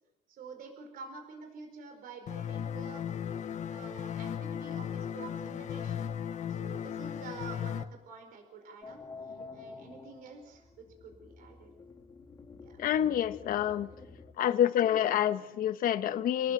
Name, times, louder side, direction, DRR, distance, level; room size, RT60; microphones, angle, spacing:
voice 1, 0.3-3.0 3.7-6.1 6.5-11.7 12.6-12.8, right 4 dB, 65° right, 4 dB, 4.7 m, -48 dB
sound 1, 2.3-7.8, left 8 dB, 50° left, 1.4 m, -36 dB
sound 2, 8.8-14.3, left 4 dB, 25° left, 3.1 m, -49 dB
voice 2, 12.8-13.9 14.4-16.5, left 10 dB, 65° left, 10 dB, 1.3 m, -27 dB
30.0 x 18.5 x 6.9 m, 1.0 s
cardioid pair, 145°, 16 cm